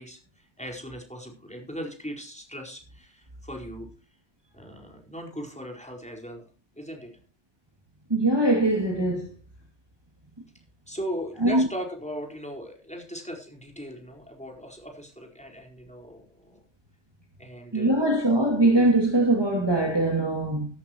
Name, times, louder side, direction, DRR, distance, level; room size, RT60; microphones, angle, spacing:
voice 1, 0.0-3.9 4.5-6.5 6.8-7.1 10.9-16.6 17.4-18.1, equal, 5° left, 4.6 m, -38 dB
voice 2, 8.1-9.3 11.4-11.7 17.7-20.7, right 1 dB, 20° right, 2.5 m, -22 dB
15.5 x 13.5 x 3.0 m
omnidirectional pair, 1.3 m